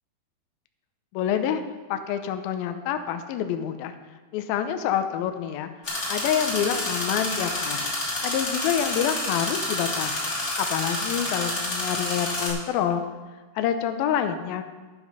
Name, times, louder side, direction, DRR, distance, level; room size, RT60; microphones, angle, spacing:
voice 1, 1.1-1.6 1.9-3.9 4.3-7.9 8.2-10.3 10.6-13.0 13.6-14.6, left 9 dB, 80° left, 8 dB, 2.5 m, -27 dB
sound 1, 5.8-12.5, left 1 dB, 25° left, 2.1 m, -29 dB
11.0 x 9.3 x 5.3 m, 1.3 s
omnidirectional pair, 4.4 m